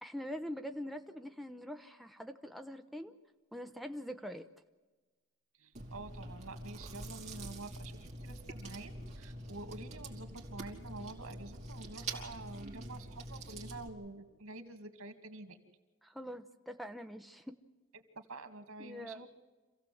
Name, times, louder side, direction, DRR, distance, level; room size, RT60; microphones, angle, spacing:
voice 1, 0.0-3.2 3.5-4.5 16.0-17.5 18.8-19.3, equal, ahead, 5 dB, 0.7 m, -44 dB
voice 2, 5.6-15.6 17.9-19.3, right 2 dB, 90° right, 8 dB, 2.3 m, -48 dB
Chewing mastication, 5.7-13.9, right 2 dB, 30° right, 3.1 m, -45 dB
27.0 x 16.0 x 7.8 m, 1.3 s
head